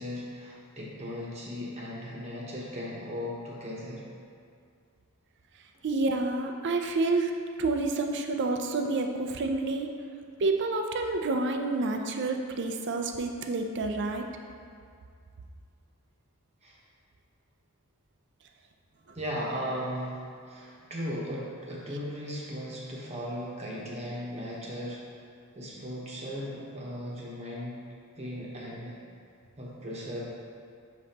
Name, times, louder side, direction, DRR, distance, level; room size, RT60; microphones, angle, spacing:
voice 1, 0.0-4.0 16.6-16.8 19.1-25.0 25.5-27.8 28.2-29.0 29.6-30.2, equal, 30° right, -5 dB, 1.0 m, -37 dB
voice 2, 5.8-7.3 7.6-9.9 10.4-14.2, right 3 dB, 55° right, 4 dB, 0.5 m, -28 dB
6.7 x 5.2 x 2.8 m, 2.3 s
head